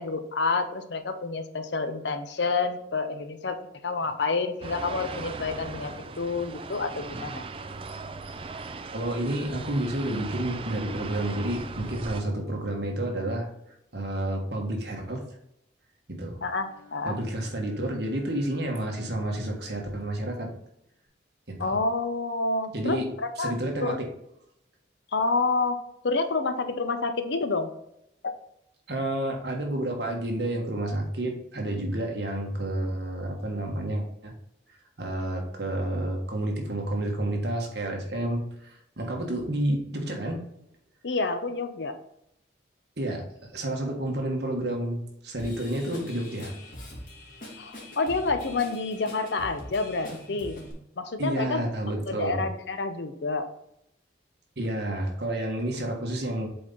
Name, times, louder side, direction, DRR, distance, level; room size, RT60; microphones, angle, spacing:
voice 1, 0.0-7.4 16.4-17.2 21.6-23.5 23.8-24.0 25.1-27.7 28.2-28.3 41.0-42.0 47.6-50.6 51.0-51.6 52.1-53.5, left 3 dB, 70° left, 9 dB, 0.7 m, -28 dB
sound 1, 4.6-12.2, right 3 dB, 30° right, 0.4 m, -38 dB
voice 2, 8.9-13.5 13.9-15.2 16.1-16.4 17.0-20.5 21.5-21.8 22.7-23.1 23.4-24.1 28.9-34.3 35.0-40.4 43.0-46.5 51.2-52.4 54.6-56.5, right 1 dB, 60° right, 1 dB, 1.5 m, -30 dB
Bowed string instrument, 16.4-21.0, left 4 dB, 85° left, 2.5 m, -52 dB
Drum kit / Drum, 45.4-50.7, left 1 dB, 45° left, 2.0 m, -43 dB
7.7 x 4.1 x 3.9 m, 0.78 s
head